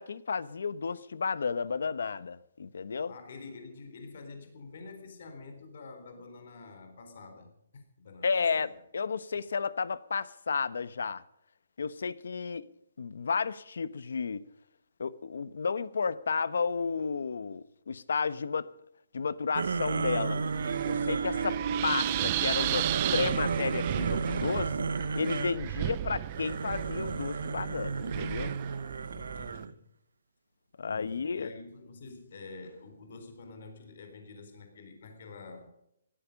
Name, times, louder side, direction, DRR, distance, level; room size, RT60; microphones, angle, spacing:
voice 1, 0.0-3.1 8.2-11.2 11.8-12.6 13.0-14.4 15.0-18.7 19.1-20.4 20.8-22.9 23.1-24.9 25.1-28.6 30.8-31.5, left 5 dB, 75° left, 1.0 m, -32 dB
voice 2, 3.1-8.8 29.1-29.9 30.8-35.7, left 3 dB, 50° left, 3.8 m, -48 dB
Wind, 19.5-29.6, right 15 dB, 25° right, 0.5 m, -35 dB
sound 1, 19.5-21.6 22.4-25.6 26.3-29.7, right 5 dB, 85° right, 1.0 m, -34 dB
sound 2, 19.9-25.2, right 6 dB, 60° right, 2.3 m, -36 dB
17.0 x 14.0 x 5.3 m
hypercardioid pair, 175°, 0 cm